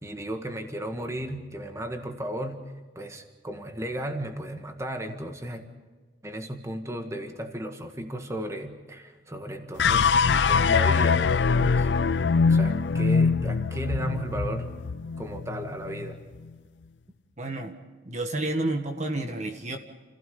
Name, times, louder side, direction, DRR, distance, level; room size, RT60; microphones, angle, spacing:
voice 1, 0.0-2.6 3.0-5.7 6.2-10.1 10.4-11.3 11.5-11.9 12.5-14.7 15.2-16.2, right 1 dB, 15° right, 5 dB, 1.8 m, -35 dB
sound 1, 9.8-16.2, left 5 dB, 65° left, 0.5 m, -23 dB
voice 2, 17.4-17.7 18.0-19.8, right 2 dB, 40° right, 5 dB, 1.6 m, -30 dB
29.5 x 16.5 x 5.4 m, 1.3 s
head